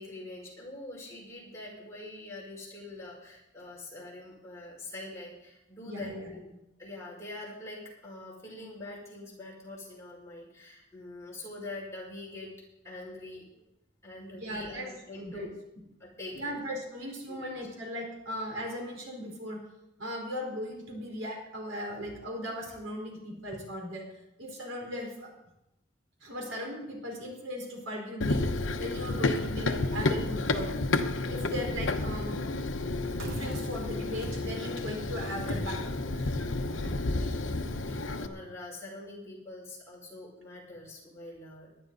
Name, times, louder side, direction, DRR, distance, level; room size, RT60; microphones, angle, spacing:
voice 1, 0.0-6.5 6.8-12.5 12.8-13.6 14.0-15.5 16.0-16.3 17.3-17.6 36.8-41.7, left 2 dB, 15° left, -5 dB, 5.4 m, -44 dB
voice 2, 5.8-6.3 14.4-14.9 15.2-15.5 16.3-19.6 20.0-24.1 24.4-25.3 26.2-28.4 28.8-30.7 31.2-32.4 33.2-36.1 36.8-37.0, equal, 85° right, 0 dB, 4.5 m, -37 dB
Run, 28.2-38.3, left 2 dB, 70° left, 1.0 m, -31 dB
19.0 x 11.5 x 4.1 m, 0.85 s
head